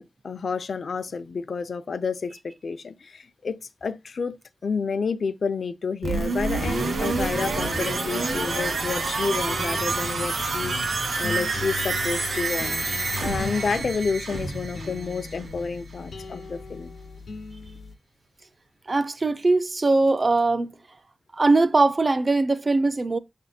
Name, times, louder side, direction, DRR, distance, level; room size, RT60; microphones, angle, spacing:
voice 1, 0.0-4.4 4.6-12.8 13.2-17.0, left 5 dB, 60° left, 0.5 m, -30 dB
sound 1, 6.0-15.7 16.1-16.2, right 3 dB, 70° right, 1.4 m, -28 dB
sound 2, 6.6-13.8, right 3 dB, 90° right, 1.6 m, -37 dB
sound 3, 8.2-17.9, left 4 dB, 80° left, 0.9 m, -39 dB
voice 2, 18.9-20.8 21.3-23.2, right 3 dB, 35° right, 0.4 m, -21 dB
6.4 x 3.5 x 4.2 m
wide cardioid pair, 125°, 0 cm